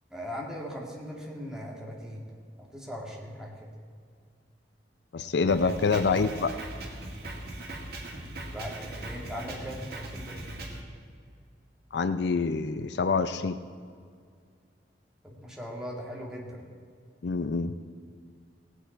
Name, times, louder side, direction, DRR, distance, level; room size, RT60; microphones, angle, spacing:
voice 1, 0.1-2.2 2.7-3.5 6.0-6.3 8.5-10.4 15.2-16.6, equal, 5° right, -3 dB, 2.1 m, -39 dB
voice 2, 5.1-6.6 11.9-13.6 17.2-17.7, left 4 dB, 70° left, 11 dB, 0.5 m, -26 dB
Drum kit, 5.5-10.8, right 1 dB, 60° right, 2.1 m, -40 dB
17.5 x 9.1 x 4.5 m, 2.2 s
head